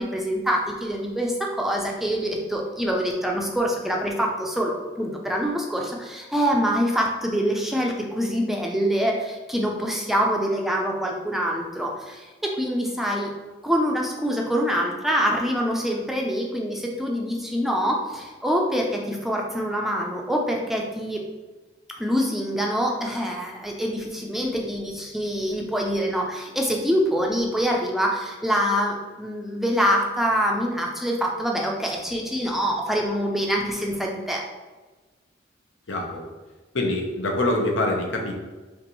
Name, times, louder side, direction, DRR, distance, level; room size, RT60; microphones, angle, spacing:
voice 1, 0.0-13.3 13.6-21.2 22.0-34.4, equal, ahead, -1 dB, 0.5 m, -25 dB
voice 2, 35.9-36.2 36.7-38.3, left 1 dB, 80° left, 1 dB, 0.8 m, -24 dB
5.9 x 2.6 x 3.0 m, 1.3 s
head